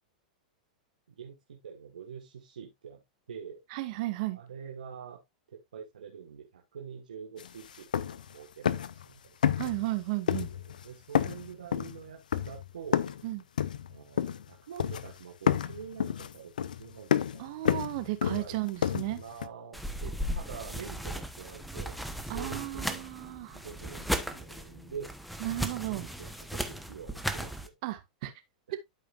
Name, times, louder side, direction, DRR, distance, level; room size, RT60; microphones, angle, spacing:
voice 1, 1.1-3.0 3.3-3.6 4.3-5.2 5.5-9.5 10.5-13.1 13.8-16.5 16.8-17.5 18.3-22.0 22.3-23.1 23.5-25.1 25.7-27.7 28.7-28.8, right 7 dB, 85° right, 1.5 m, -46 dB
voice 2, 3.7-4.4 9.6-10.5 13.2-13.4 17.4-19.2 22.3-23.6 25.4-26.1 27.8-28.3, right 17 dB, 55° right, 1.6 m, -34 dB
sound 1, 7.4-7.5 7.7-8.3 8.6-9.0 9.4-10.0 10.3-10.8 11.1-13.2 13.6-14.5 14.8-15.2 15.5-19.5, left 9 dB, 85° left, 0.6 m, -30 dB
sound 2, 19.7-27.7, equal, ahead, 1.0 m, -36 dB
12.5 x 5.0 x 2.5 m
hypercardioid pair, 115°, 4 cm